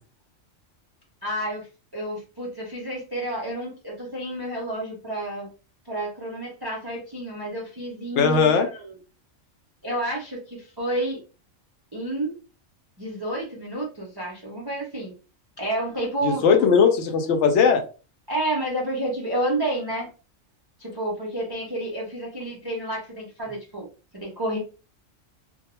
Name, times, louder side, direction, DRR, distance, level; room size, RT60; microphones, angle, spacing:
voice 1, 1.2-1.7 1.9-5.5 5.8-9.0 9.8-11.2 11.9-12.4 13.0-15.1 15.6-16.7 18.3-20.1 20.8-23.9 24.1-24.6, right 1 dB, 35° right, -4 dB, 0.4 m, -30 dB
voice 2, 8.2-8.7 16.2-17.8, left 6 dB, 70° left, 5 dB, 0.8 m, -18 dB
2.3 x 2.2 x 2.9 m, 0.34 s
omnidirectional pair, 1.4 m